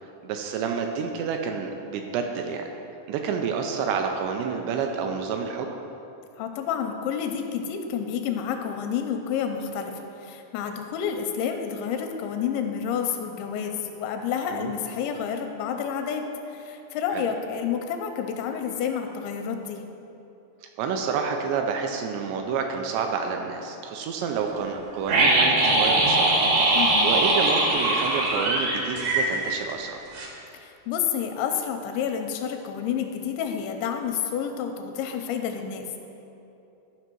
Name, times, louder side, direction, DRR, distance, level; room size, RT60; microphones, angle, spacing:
voice 1, 0.0-2.7 3.1-5.7 14.5-14.7 17.1-17.2 20.8-26.4 27.0-30.0, right 6 dB, 85° right, 4 dB, 2.6 m, -29 dB
voice 2, 6.4-19.8 26.7-27.1 30.5-36.0, left 7 dB, 85° left, 5 dB, 2.9 m, -29 dB
sound 1, 25.1-29.9 30.1-30.3, right 2 dB, 65° right, 1.8 m, -21 dB
13.0 x 5.6 x 4.5 m, 2.8 s
omnidirectional pair, 5.3 m